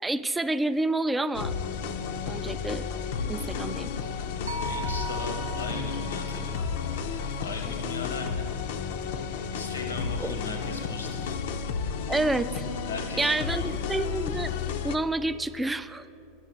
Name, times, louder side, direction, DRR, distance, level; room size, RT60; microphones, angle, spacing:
voice 1, 0.0-1.5 2.3-2.9 3.3-3.9 10.2-10.4 12.1-12.6 13.2-14.5 14.8-16.1, right 2 dB, 10° right, 12 dB, 0.3 m, -28 dB
sound 1, 1.3-15.0, left 6 dB, 65° left, 0.5 m, -32 dB
sound 2, 4.5-8.7, right 3 dB, 80° right, 0.7 m, -41 dB
voice 2, 4.6-6.6 7.4-8.6 9.5-11.4 12.9-13.9, left 3 dB, 85° left, 4 dB, 0.9 m, -38 dB
8.3 x 6.3 x 6.6 m, 2.8 s
hypercardioid pair, 95°, 0 cm